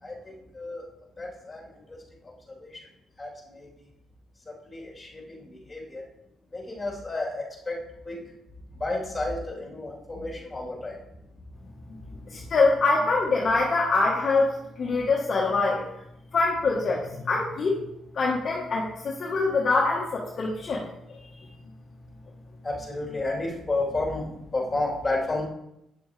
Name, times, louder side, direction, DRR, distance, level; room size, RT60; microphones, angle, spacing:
voice 1, 0.0-0.8 1.2-1.6 1.9-2.0 3.2-3.7 4.5-6.0 6.5-7.8 8.0-8.2 8.8-11.0 22.6-24.3 24.5-25.4, left 2 dB, 20° left, -4 dB, 3.2 m, -31 dB
voice 2, 12.3-15.8 16.3-17.9 18.1-20.8, left 3 dB, 45° left, -3 dB, 1.2 m, -24 dB
8.6 x 7.0 x 3.2 m, 0.83 s
cardioid pair, 90°, 0 cm